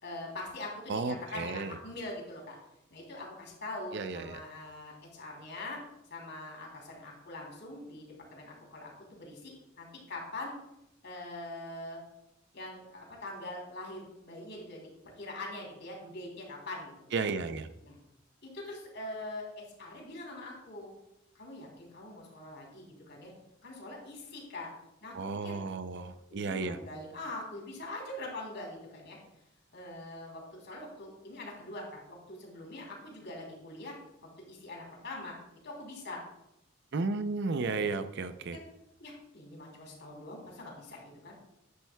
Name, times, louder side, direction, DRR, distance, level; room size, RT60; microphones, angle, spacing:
voice 1, 0.0-2.6 2.9-5.8 6.1-10.5 11.0-12.0 12.5-14.9 15.2-17.1 17.8-18.0 18.4-20.9 21.3-23.3 23.6-24.7 25.0-25.5 26.3-29.2 29.7-35.4 35.6-36.2 38.5-38.6 39.0-41.4, left 2 dB, 60° left, -1 dB, 3.2 m, -43 dB
voice 2, 0.9-1.7 3.9-4.4 17.1-17.7 25.1-26.8 36.9-38.6, right 4 dB, 60° right, 11 dB, 0.5 m, -33 dB
10.5 x 10.0 x 2.3 m, 0.87 s
head